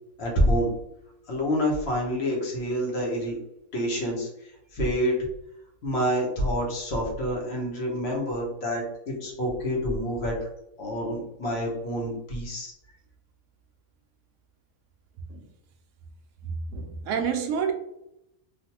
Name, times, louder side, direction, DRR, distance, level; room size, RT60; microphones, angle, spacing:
voice 1, 0.2-0.7 1.3-3.4 3.7-5.2 5.8-10.3 10.8-12.7, equal, 50° left, 1.1 m, -27 dB
voice 2, 16.4-17.7, right 6 dB, 70° right, 0.9 m, -29 dB
3.2 x 2.5 x 2.8 m
omnidirectional pair, 1.5 m